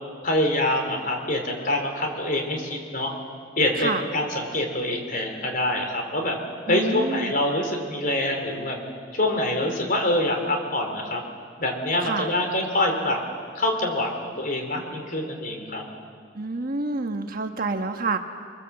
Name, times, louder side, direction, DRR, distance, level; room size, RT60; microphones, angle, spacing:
voice 1, 0.2-3.1 3.6-6.4 6.7-8.8 9.1-11.2 11.6-13.2 13.5-15.8, left 1 dB, 45° left, 3 dB, 4.3 m, -25 dB
voice 2, 6.7-7.3 12.0-12.3 16.3-18.2, right 3 dB, 45° right, 5 dB, 1.4 m, -28 dB
28.5 x 23.0 x 7.9 m, 2.2 s
head